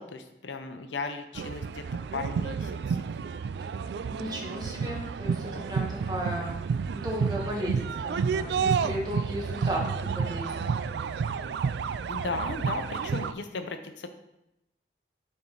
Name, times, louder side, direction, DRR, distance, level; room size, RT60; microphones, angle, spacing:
voice 1, 0.0-1.8 2.1-3.0 12.1-14.1, left 3 dB, 85° left, 7 dB, 0.7 m, -36 dB
sound 1, 1.3-13.3, right 5 dB, 70° right, 0.3 m, -30 dB
voice 2, 4.1-6.6 6.9-7.8 8.0-10.7, equal, 20° right, -2 dB, 1.4 m, -35 dB
8.9 x 4.3 x 3.9 m, 0.89 s
head